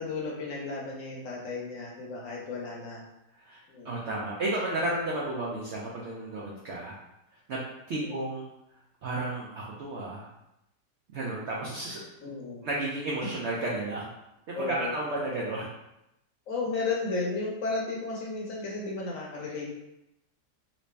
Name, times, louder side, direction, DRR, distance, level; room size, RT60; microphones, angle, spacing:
voice 1, 0.0-3.0 3.7-4.1 7.9-8.3 12.2-12.6 14.5-14.9 16.5-19.7, left 3 dB, 65° left, -3 dB, 0.9 m, -34 dB
voice 2, 3.8-7.0 7.5-7.6 7.9-8.5 9.0-10.3 11.1-12.3 12.6-14.1 14.5-15.7, right 2 dB, 75° right, -4 dB, 0.6 m, -32 dB
3.0 x 2.8 x 3.2 m, 0.87 s
omnidirectional pair, 1.8 m